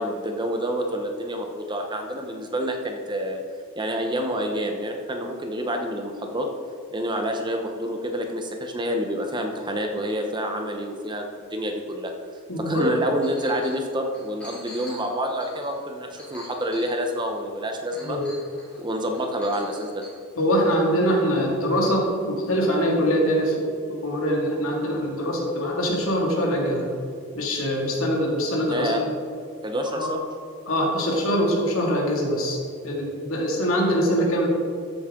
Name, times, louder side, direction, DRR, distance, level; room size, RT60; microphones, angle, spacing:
voice 1, 0.0-3.4 3.8-6.5 6.9-12.1 12.6-18.2 18.8-20.0 28.7-29.0 29.6-30.2, equal, 20° right, 3 dB, 0.8 m, -28 dB
voice 2, 12.5-12.9 18.0-18.3 20.4-26.9 27.3-29.1 29.9-30.1 30.7-32.6 32.8-34.5, equal, 70° left, -1 dB, 2.4 m, -23 dB
Chink clink, 13.2-13.8 14.1-17.3 17.9-18.8 19.1-20.1, equal, 5° left, 2.9 m, -44 dB
13.5 x 8.2 x 3.8 m, 2.4 s
head